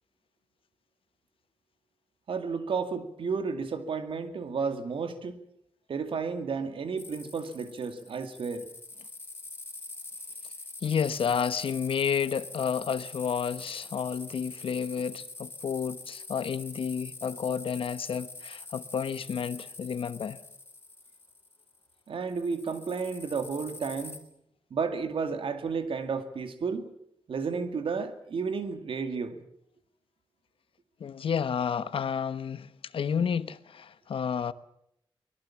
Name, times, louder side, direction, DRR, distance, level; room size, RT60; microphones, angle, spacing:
voice 1, 2.3-5.4 5.9-8.7 22.1-24.2 24.7-26.9 27.3-29.4, right 5 dB, 80° right, 2.3 m, -32 dB
sound 1, 7.0-21.9 22.3-24.2, left 3 dB, 25° left, 3.7 m, -45 dB
voice 2, 10.8-20.4 31.0-34.5, left 7 dB, 90° left, 1.0 m, -31 dB
24.0 x 21.0 x 7.3 m
wide cardioid pair, 155°, 9 cm